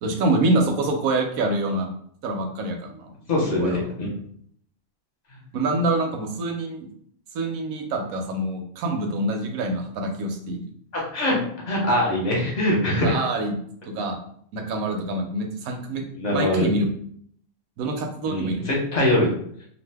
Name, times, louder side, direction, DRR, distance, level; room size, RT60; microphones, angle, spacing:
voice 1, 0.0-1.9 2.2-3.9 5.5-6.9 7.3-10.6 13.0-13.6 13.9-14.2 14.5-16.9 17.8-18.6, right 2 dB, 80° right, 4 dB, 1.1 m, -26 dB
voice 2, 3.3-4.1 10.9-13.2 16.2-16.7 18.3-19.3, left 1 dB, 35° left, -3 dB, 0.9 m, -23 dB
2.6 x 2.4 x 3.4 m, 0.65 s
omnidirectional pair, 1.5 m